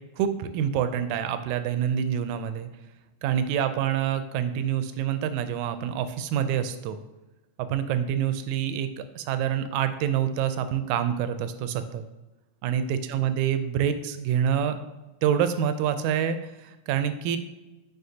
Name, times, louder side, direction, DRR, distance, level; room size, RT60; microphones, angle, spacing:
voice 1, 0.2-2.7 3.2-7.0 7.6-12.1 12.6-14.8 15.2-17.4, right 9 dB, 80° right, 10 dB, 1.9 m, -27 dB
7.7 x 5.4 x 2.8 m, 1.1 s
omnidirectional pair, 3.5 m